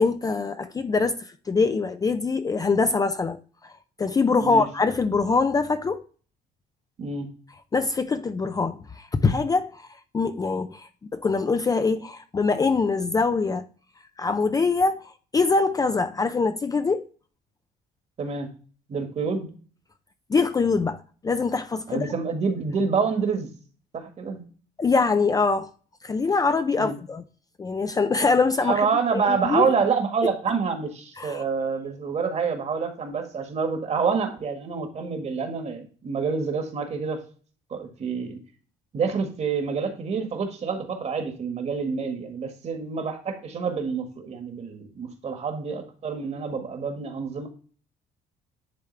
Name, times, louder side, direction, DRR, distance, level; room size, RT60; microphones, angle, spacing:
voice 1, 0.0-6.0 7.7-13.7 14.2-17.0 20.3-22.1 24.8-25.7 26.0-27.2 27.6-29.7 31.2-31.4, left 4 dB, 20° left, 0.5 m, -24 dB
voice 2, 7.0-7.3 18.2-18.5 18.9-19.5 21.9-23.5 23.9-24.4 26.8-26.9 28.6-37.2 37.7-38.4 38.9-47.5, right 5 dB, 40° right, 1.7 m, -27 dB
10.5 x 3.5 x 3.2 m
cardioid pair, 110°, 17 cm